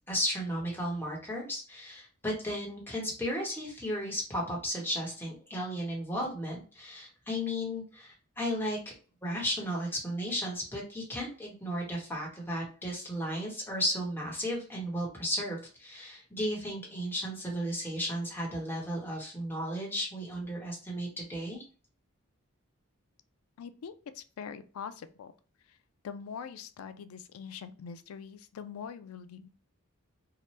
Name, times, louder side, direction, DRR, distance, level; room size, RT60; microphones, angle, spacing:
voice 1, 0.1-8.8 9.2-21.6, equal, 10° left, -3 dB, 1.0 m, -34 dB
voice 2, 23.6-25.3 26.0-29.5, left 7 dB, 85° left, 11 dB, 0.3 m, -43 dB
2.8 x 2.1 x 3.1 m, 0.38 s
head